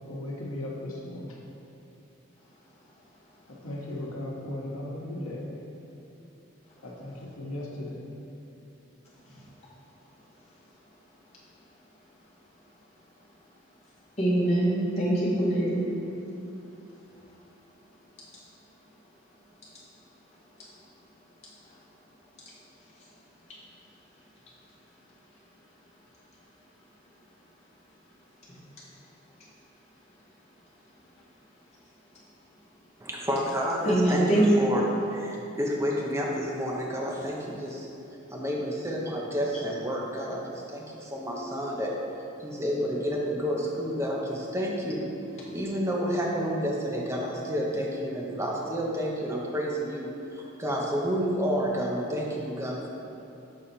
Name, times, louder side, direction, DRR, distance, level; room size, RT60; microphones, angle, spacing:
voice 1, 0.1-1.4 3.5-5.5 6.8-8.0, left 1 dB, 80° left, -2 dB, 1.1 m, -36 dB
voice 2, 14.2-15.8 33.9-34.4, right 1 dB, 30° left, -8 dB, 1.3 m, -24 dB
voice 3, 33.0-37.9 38.3-41.9 42.4-45.1 45.5-52.9, equal, 15° right, -2 dB, 0.6 m, -30 dB
6.7 x 3.9 x 4.3 m, 3.0 s
head